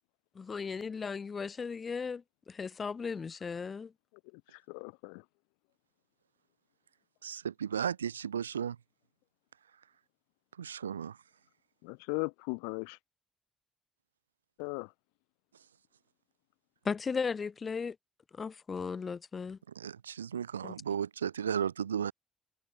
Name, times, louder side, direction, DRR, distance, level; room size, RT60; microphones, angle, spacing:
voice 1, 0.3-3.9 16.8-18.0 18.3-19.6 20.6-20.7, left 5 dB, 40° left, 3.0 m, -36 dB
voice 2, 4.3-5.2 11.8-13.0 14.6-14.9, left 40 dB or more, 75° left, 3.0 m, -38 dB
voice 3, 7.2-8.8 10.6-11.2 19.7-22.1, right 8 dB, 85° right, 1.4 m, -34 dB
figure-of-eight pair, 40°, 0 cm